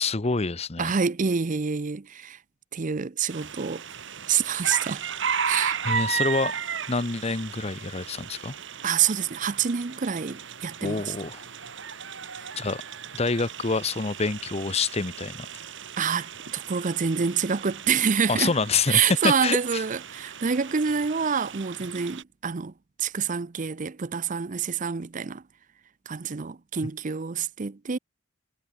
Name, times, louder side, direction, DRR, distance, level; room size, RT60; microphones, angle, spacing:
voice 1, 0.0-0.9 5.8-6.5 6.9-8.5 10.8-11.4 12.6-12.8 13.1-15.5 18.3-19.8, left 4 dB, 30° left, 0.9 m, -27 dB
voice 2, 0.8-2.4 2.7-3.8 4.3-5.0 5.5-5.8 8.8-11.1 16.0-18.5 18.9-22.7 23.0-25.4 26.1-28.0, right 6 dB, 40° right, 0.6 m, -27 dB
sound 1, 3.3-22.2, right 6 dB, 65° right, 3.1 m, -35 dB
head